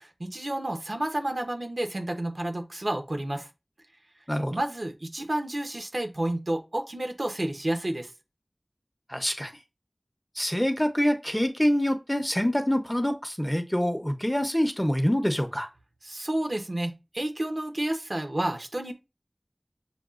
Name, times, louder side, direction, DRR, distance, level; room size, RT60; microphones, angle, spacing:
voice 1, 0.0-3.5 4.5-8.1 16.0-18.9, right 1 dB, 80° right, 0.8 m, -30 dB
voice 2, 4.3-4.6 9.1-9.5 10.4-15.7, equal, 15° left, 0.7 m, -26 dB
6.9 x 2.3 x 2.4 m
wide cardioid pair, 40°, 0 cm